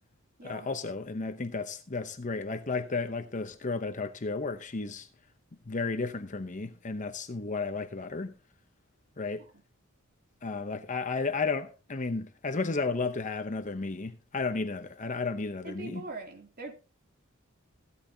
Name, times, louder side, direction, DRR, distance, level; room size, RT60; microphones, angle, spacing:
voice 1, 0.4-5.1 5.7-8.3 9.2-9.4 10.4-16.0, left 4 dB, 40° left, 0.8 m, -33 dB
voice 2, 15.6-16.7, right 2 dB, 45° right, 3.0 m, -42 dB
16.0 x 12.5 x 2.8 m
head